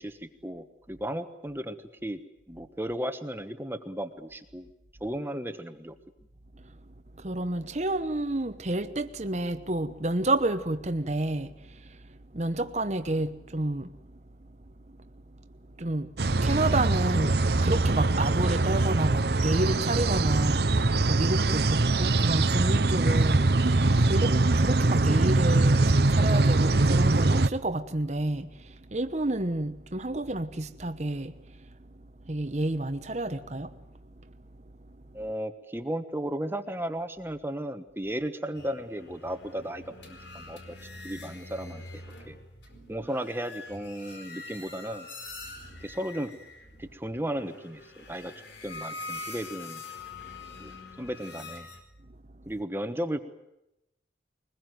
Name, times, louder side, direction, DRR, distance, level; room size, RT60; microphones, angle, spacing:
voice 1, 0.0-2.2 2.5-4.7 5.0-5.9 35.1-42.4 42.9-45.1 45.8-46.3 46.8-48.3 48.6-49.8 50.6-51.7 52.5-53.2, right 1 dB, 10° right, 1.2 m, -35 dB
voice 2, 7.1-14.2 14.9-15.1 15.7-33.8 34.2-34.3 35.1-35.2 45.7-45.8 50.5-50.6 52.5-52.6, right 2 dB, 40° right, 1.0 m, -30 dB
sound 1, 16.2-27.5, right 2 dB, 60° right, 0.8 m, -23 dB
sound 2, 38.6-51.8, left 3 dB, 75° left, 4.6 m, -44 dB
22.5 x 21.0 x 9.3 m
head